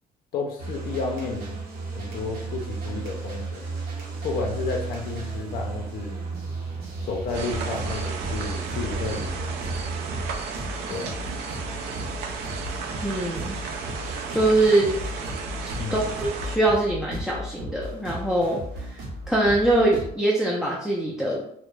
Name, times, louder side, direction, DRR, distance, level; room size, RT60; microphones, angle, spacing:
voice 1, 0.3-1.6 2.0-3.6 4.2-6.2 7.0-9.7 10.9-11.2 14.8-14.9 15.8-16.0, left 4 dB, 60° left, 2 dB, 0.5 m, -32 dB
sound 1, 0.6-20.1, right 2 dB, 65° right, 0.8 m, -34 dB
sound 2, 7.3-16.6, right 5 dB, 80° right, 0.4 m, -34 dB
voice 2, 13.0-13.6 14.3-15.0 15.9-19.0 19.3-21.4, right 2 dB, 5° right, -4 dB, 0.4 m, -23 dB
2.3 x 2.0 x 3.1 m, 0.71 s
cardioid pair, 110°, 17 cm